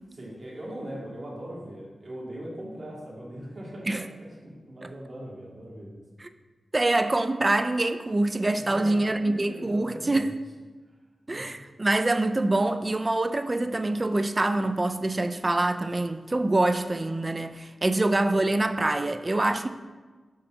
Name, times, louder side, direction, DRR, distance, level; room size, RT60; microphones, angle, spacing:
voice 1, 0.1-6.0 8.6-10.3 11.3-11.5, right 1 dB, 40° right, 2.0 m, -40 dB
voice 2, 6.7-10.3 11.3-19.7, right 2 dB, 25° right, 0.3 m, -25 dB
6.5 x 3.9 x 6.0 m
wide cardioid pair, 110°, 0 cm